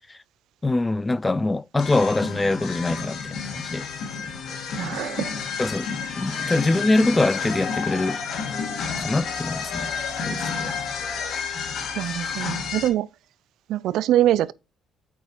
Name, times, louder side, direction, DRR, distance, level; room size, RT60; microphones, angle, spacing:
voice 1, 0.6-3.9 5.6-8.2 9.0-9.9 10.3-10.8, left 2 dB, 20° left, 0.3 m, -24 dB
sound 1, 1.8-12.9, left 6 dB, 70° left, 2.0 m, -30 dB
voice 2, 4.7-5.4 12.0-13.1 13.7-14.5, right 12 dB, 75° right, 0.3 m, -23 dB
8.3 x 4.6 x 2.9 m
supercardioid pair, 85°, 0 cm